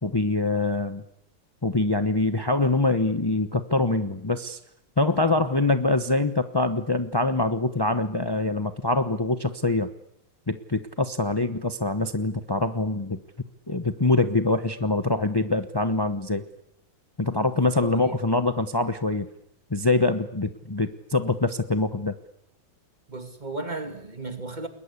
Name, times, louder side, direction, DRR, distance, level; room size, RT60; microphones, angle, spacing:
voice 1, 0.0-1.0 1.6-4.6 5.0-9.9 10.5-13.2 13.7-16.4 17.2-19.3 19.7-22.1, left 2 dB, 30° left, 9 dB, 0.4 m, -24 dB
voice 2, 17.8-18.2 23.1-24.7, right 2 dB, 20° right, 7 dB, 2.4 m, -35 dB
30.0 x 21.0 x 8.4 m, 0.80 s
omnidirectional pair, 2.2 m